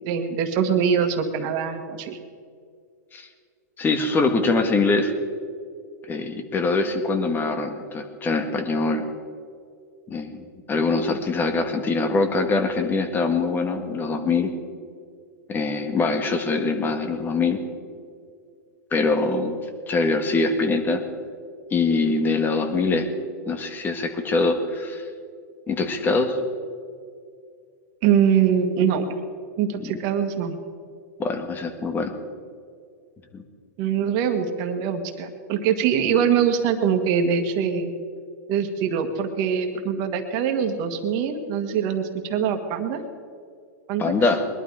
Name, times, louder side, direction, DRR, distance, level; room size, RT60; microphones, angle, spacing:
voice 1, 0.0-2.2 28.0-29.2 29.6-30.5 33.8-37.9 38.5-43.0 43.9-44.0, right 7 dB, 45° right, 6 dB, 1.9 m, -23 dB
voice 2, 3.8-5.1 6.1-9.0 10.1-14.5 15.5-17.6 18.9-19.6 19.9-21.0 21.7-23.1 23.5-25.0 25.7-26.4 29.8-29.9 31.2-32.1 33.3-33.4 44.0-44.4, left 3 dB, 20° left, 7 dB, 1.7 m, -23 dB
21.0 x 12.0 x 4.9 m, 2.2 s
hypercardioid pair, 125°, 9 cm